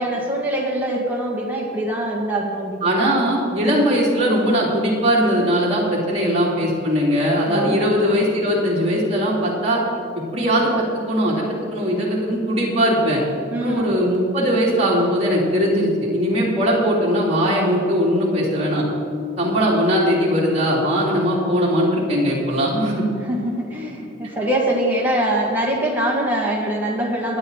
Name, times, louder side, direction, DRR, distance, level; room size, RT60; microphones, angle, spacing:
voice 1, 0.0-2.9 7.5-7.9 13.5-13.9 23.3-27.4, right 1 dB, 10° right, -3 dB, 2.0 m, -23 dB
voice 2, 2.8-9.8 10.1-13.2 13.6-18.9 19.4-23.0, equal, 35° right, -5 dB, 3.2 m, -20 dB
21.0 x 8.8 x 4.1 m, 2.5 s
head